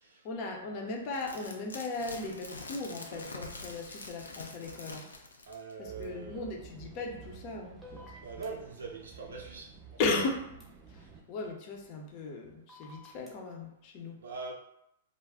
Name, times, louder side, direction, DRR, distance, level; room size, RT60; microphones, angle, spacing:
voice 1, 0.2-5.0 5.8-8.0 10.0-10.6 11.3-14.2, left 3 dB, 45° left, 1 dB, 0.6 m, -36 dB
sound 1, 1.1-5.7 6.0-6.1, left 2 dB, 90° left, 0.4 m, -45 dB
voice 2, 5.4-6.6 8.2-9.7 14.2-14.5, right 4 dB, 75° right, 0 dB, 0.6 m, -42 dB
sound 2, 5.8-11.2, right 6 dB, 30° right, 0.5 m, -51 dB
sound 3, 7.8-8.5 10.6-10.7 12.7-13.3, left 2 dB, ahead, 0.9 m, -51 dB
2.3 x 2.0 x 3.4 m, 0.81 s
hypercardioid pair, 115°, 0 cm